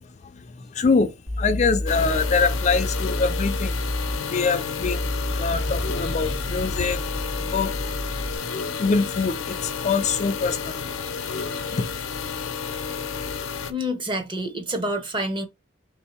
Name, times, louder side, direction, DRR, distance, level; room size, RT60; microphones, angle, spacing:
voice 1, 0.0-3.8 4.2-7.0 7.4-7.9 8.4-10.8 11.7-12.0, left 4 dB, 35° left, 0.3 m, -25 dB
sound 1, 1.3-8.4, left 1 dB, 55° right, 1.4 m, -29 dB
sound 2, 1.9-13.7, left 6 dB, 90° left, 0.6 m, -31 dB
sound 3, 5.4-7.6, left 1 dB, 40° right, 1.3 m, -40 dB
voice 2, 11.0-11.7 13.7-15.5, equal, 25° right, 0.7 m, -29 dB
3.6 x 2.7 x 4.2 m
head